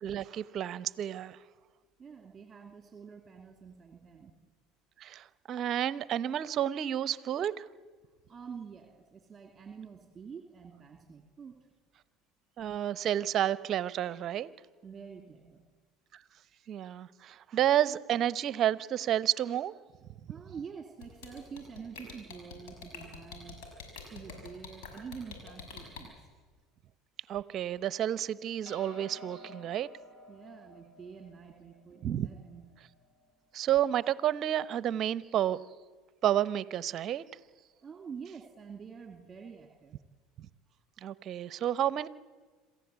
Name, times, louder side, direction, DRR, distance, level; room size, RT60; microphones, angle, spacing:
voice 1, 0.0-1.4 5.0-7.7 12.6-14.5 16.1-16.2 16.7-19.7 27.3-29.9 32.0-32.3 33.5-35.6 36.2-37.2 41.0-42.1, right 11 dB, 50° right, 18 dB, 0.8 m, -30 dB
voice 2, 2.0-4.3 8.3-11.6 14.8-15.6 20.3-23.6 24.1-26.3 30.3-32.6 37.8-40.0, right 6 dB, 30° right, 4 dB, 2.5 m, -47 dB
sound 1, 21.0-26.0, left 5 dB, 70° left, 6.2 m, -45 dB
sound 2, 28.6-33.3, left 1 dB, 40° left, 6.3 m, -53 dB
27.0 x 15.0 x 8.2 m, 1.5 s
hypercardioid pair, 80°, 0 cm